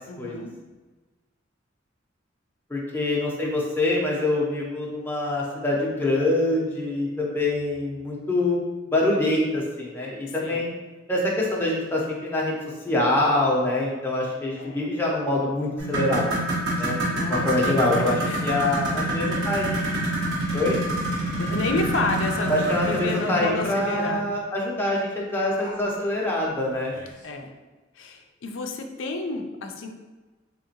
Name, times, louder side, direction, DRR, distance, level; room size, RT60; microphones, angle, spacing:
voice 1, 0.1-0.5 10.4-10.6 14.6-14.8 17.0-18.5 21.4-24.3 27.2-27.5 28.0-29.9, left 2 dB, 85° left, 4 dB, 0.4 m, -30 dB
voice 2, 2.7-8.6 8.9-10.7 11.1-12.5 12.8-16.4 16.8-17.0 17.3-19.9 20.5-20.8 22.5-26.9, left 1 dB, 10° left, -4 dB, 0.6 m, -25 dB
sound 1, 15.8-24.2 25.6-25.7 26.2-26.3 27.0-27.1, right 1 dB, 85° right, 1.3 m, -27 dB
3.7 x 2.9 x 2.8 m, 1.2 s
head